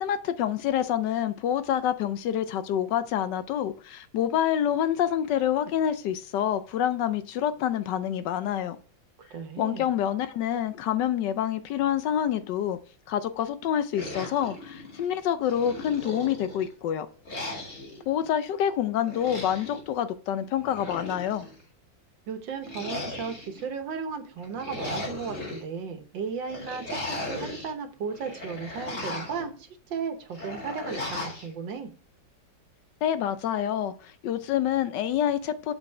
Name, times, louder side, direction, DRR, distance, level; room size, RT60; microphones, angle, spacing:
voice 1, 0.0-8.8 9.6-12.8 13.1-17.1 18.1-21.5 33.0-35.7, left 10 dB, 75° left, 1.2 m, -27 dB
voice 2, 9.2-9.9 22.3-31.9, right 6 dB, 75° right, 1.7 m, -35 dB
sound 1, 13.9-15.1 15.5-16.7 17.3-18.0 19.0-19.8 20.6-21.6 22.6-23.6 24.4-25.6 26.5-27.7 28.1-29.5 30.3-31.5, left 2 dB, 40° left, 2.7 m, -37 dB
7.1 x 5.4 x 4.5 m
omnidirectional pair, 2.0 m